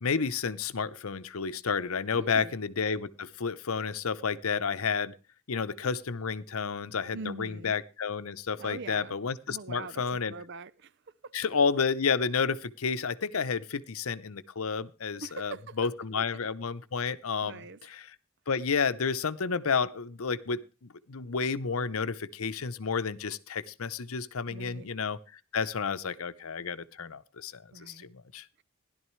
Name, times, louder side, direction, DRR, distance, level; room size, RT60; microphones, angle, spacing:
voice 1, 0.0-5.1 5.5-10.3 11.3-17.6 17.9-18.1 18.5-25.2 25.5-28.5, left 5 dB, 75° left, 0.7 m, -31 dB
voice 2, 2.1-2.6 7.1-7.7 8.6-9.2 9.5-10.0 10.3-11.3 15.2-15.9 16.2-16.3 17.4-17.8 24.5-24.9 27.7-28.1, right 3 dB, 55° right, 0.6 m, -43 dB
16.0 x 11.5 x 3.1 m
head